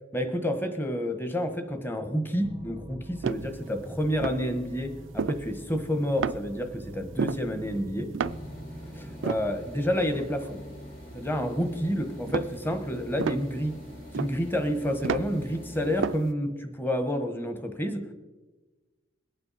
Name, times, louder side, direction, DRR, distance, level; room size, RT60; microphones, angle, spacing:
voice 1, 0.1-8.2 8.9-10.6 11.1-13.8 14.2-18.1, equal, 10° left, 7 dB, 1.2 m, -29 dB
sound 1, 2.4-10.7, right 1 dB, 20° right, 0.6 m, -45 dB
sound 2, 3.2-3.8 4.1-4.6 5.0-5.9 6.2-6.7 7.0-8.8 9.1-11.7 12.2-15.5 15.8-16.3, right 5 dB, 75° right, 0.4 m, -33 dB
sound 3, 8.2-16.1, equal, 50° left, 4.9 m, -44 dB
21.5 x 9.0 x 4.1 m, 1.2 s
head